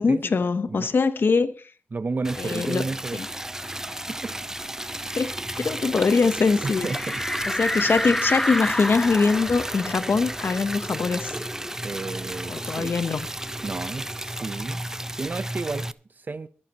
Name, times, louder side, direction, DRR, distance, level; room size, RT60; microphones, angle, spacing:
voice 1, 0.0-1.5 2.4-2.9 3.1-3.3 5.1-6.9 7.6-11.4 12.5-13.3, left 4 dB, 65° left, 1.1 m, -23 dB
voice 2, 1.9-3.2 4.1-4.3 6.6-7.2 11.8-12.9 13.6-14.8 15.1-16.5, right 3 dB, 50° right, 0.8 m, -32 dB
Liquid, 2.2-15.9, right 1 dB, 15° right, 0.6 m, -33 dB
sound 1, 6.8-12.0 12.3-12.4 12.7-14.4, left 1 dB, 10° left, 0.9 m, -30 dB
23.5 x 9.0 x 3.0 m
cardioid pair, 50°, 4 cm